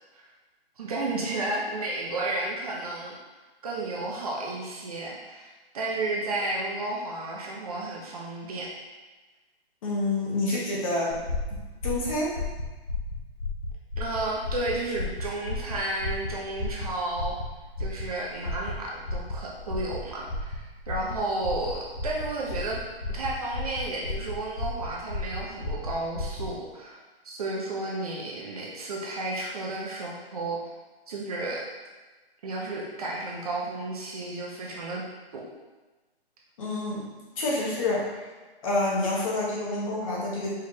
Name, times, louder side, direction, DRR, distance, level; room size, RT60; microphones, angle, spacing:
voice 1, 0.8-3.2 3.6-5.5 5.7-8.7 10.5-10.6 14.0-17.4 17.8-22.8 23.1-30.6 31.1-31.6 32.4-35.0 35.3-35.4, right 2 dB, 35° right, -3 dB, 0.7 m, -32 dB
voice 2, 9.8-11.2 11.8-12.3 36.6-37.0 37.4-38.3 38.6-40.5, left 2 dB, 35° left, -5 dB, 1.1 m, -28 dB
sound 1, 11.1-26.5, left 2 dB, 75° left, 1.1 m, -34 dB
4.9 x 3.2 x 2.8 m, 1.2 s
hypercardioid pair, 155°, 31 cm